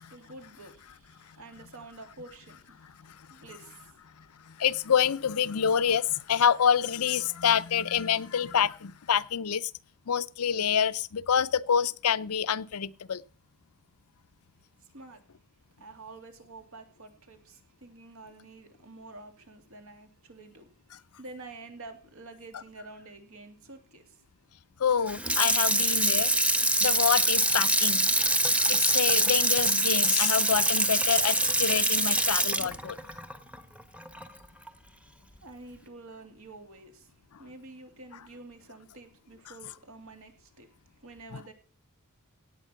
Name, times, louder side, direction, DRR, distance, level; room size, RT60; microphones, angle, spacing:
voice 1, 0.0-2.9 3.3-3.9 14.8-15.2 15.8-20.7 21.2-24.2 35.4-37.1 37.4-40.7 41.0-41.5, right 2 dB, 65° right, 2.9 m, -48 dB
voice 2, 2.8-3.3 4.5-9.7 10.1-13.2 24.8-28.1 28.7-33.0 41.3-41.4, left 8 dB, 75° left, 0.6 m, -27 dB
Water tap faucet / Sink (filling or washing), 25.1-34.3 34.7-34.8, right 1 dB, 5° right, 1.1 m, -25 dB
17.5 x 8.2 x 5.7 m
head